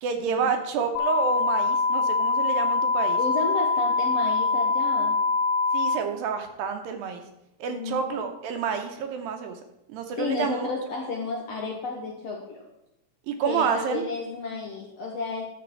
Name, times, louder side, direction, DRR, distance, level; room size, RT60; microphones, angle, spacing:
voice 1, 0.0-3.2 5.7-7.2 7.6-9.6 9.9-10.7 13.3-14.0, right 6 dB, 75° right, 5 dB, 2.5 m, -29 dB
sound 1, 1.0-6.0, left 4 dB, 85° left, 2.7 m, -24 dB
voice 2, 3.2-5.2 7.7-8.3 10.2-12.7 13.5-15.4, left 3 dB, 65° left, -1 dB, 1.7 m, -32 dB
11.0 x 7.1 x 4.6 m, 0.86 s
omnidirectional pair, 4.4 m